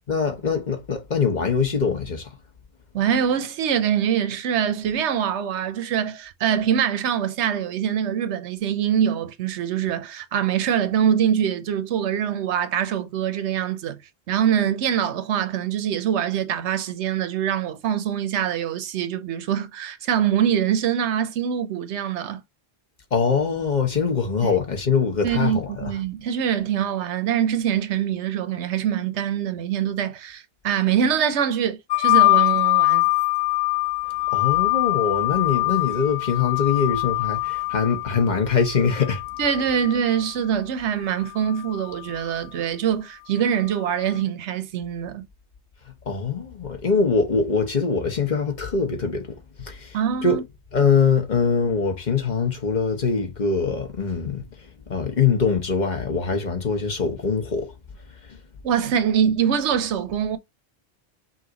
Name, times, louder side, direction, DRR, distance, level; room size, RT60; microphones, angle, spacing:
voice 1, 0.1-2.3 23.1-25.9 34.3-39.2 46.1-50.0 50.2-50.4 50.7-54.5 54.9-57.7 58.3-58.4, left 5 dB, 45° left, 1.0 m, -23 dB
voice 2, 2.9-14.0 14.3-22.4 24.4-24.5 25.2-33.1 39.4-45.3 49.9-50.4 58.6-60.4, right 9 dB, 85° right, 0.9 m, -24 dB
sound 1, 31.9-40.3 41.3-42.2, left 30 dB, 65° left, 1.1 m, -23 dB
5.6 x 2.5 x 2.8 m
omnidirectional pair, 1.1 m